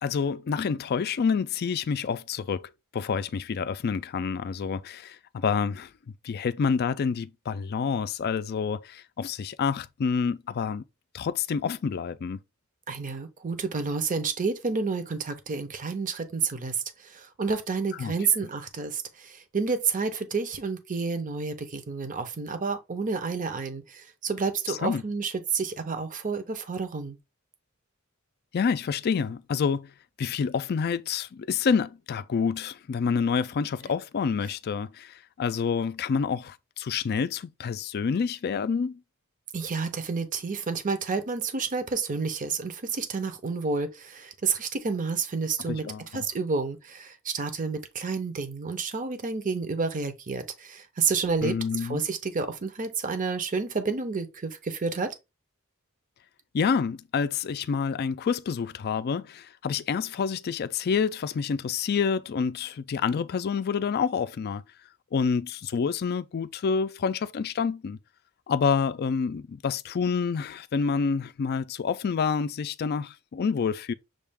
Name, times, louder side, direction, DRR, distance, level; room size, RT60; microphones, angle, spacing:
voice 1, 0.0-5.9 6.2-10.8 11.1-12.4 18.0-18.1 24.7-25.0 28.5-29.9 30.2-39.0 45.7-46.2 51.4-52.0 56.5-64.6 65.1-68.0 68.5-73.9, left 6 dB, 50° left, 0.4 m, -28 dB
voice 2, 12.9-27.2 39.5-45.9 46.1-55.1, right 4 dB, 40° right, 0.7 m, -30 dB
6.4 x 2.4 x 3.4 m
head